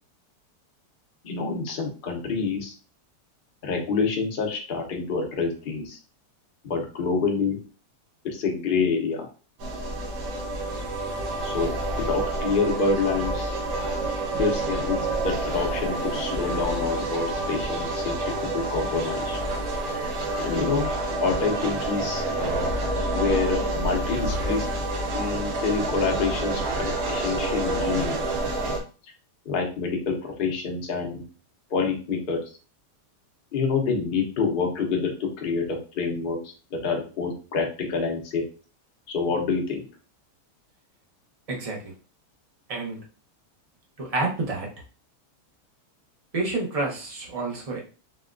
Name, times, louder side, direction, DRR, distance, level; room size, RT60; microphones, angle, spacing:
voice 1, 1.2-2.7 3.6-6.0 6.6-7.6 8.2-9.3 11.4-11.8 12.1-13.5 14.3-18.1 18.4-19.4 19.9-20.1 20.4-22.7 23.1-24.7 25.1-28.2 29.5-31.2 31.7-32.4 33.5-36.4 36.7-38.4 39.1-39.9, left 4 dB, 50° left, 1 dB, 0.6 m, -27 dB
sound 1, 9.6-28.8, right 2 dB, 65° right, 0.9 m, -28 dB
voice 2, 41.5-41.9 42.7-43.0 44.0-44.7 46.3-47.8, right 3 dB, 40° right, -2 dB, 0.5 m, -29 dB
4.0 x 2.2 x 2.4 m, 0.35 s
omnidirectional pair, 1.8 m